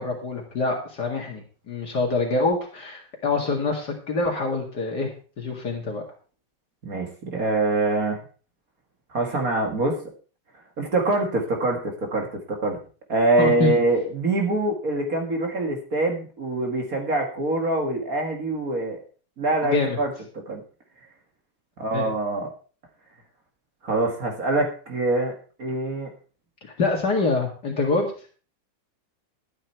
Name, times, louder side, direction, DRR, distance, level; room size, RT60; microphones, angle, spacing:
voice 1, 0.0-6.0 13.4-13.7 19.6-20.0 21.9-22.0 26.8-28.1, left 3 dB, 65° left, 0 dB, 2.6 m, -25 dB
voice 2, 6.8-8.2 9.1-10.0 10.8-12.8 13.1-19.0 19.4-20.1 20.5-20.6 21.8-22.5 23.8-26.1, right 2 dB, 50° right, 2 dB, 2.3 m, -24 dB
12.0 x 8.9 x 4.5 m, 0.39 s
omnidirectional pair, 1.9 m